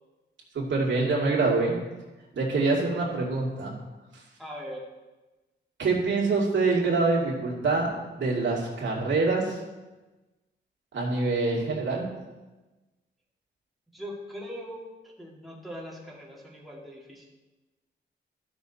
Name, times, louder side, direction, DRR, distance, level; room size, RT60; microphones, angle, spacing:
voice 1, 0.5-1.8 2.3-3.7 4.1-4.2 5.8-9.6 10.9-12.1, right 3 dB, 75° right, -3 dB, 2.5 m, -25 dB
voice 2, 4.4-4.8 13.9-17.3, equal, ahead, -4 dB, 2.2 m, -41 dB
12.5 x 6.4 x 4.1 m, 1.1 s
cardioid pair, 100°, 20 cm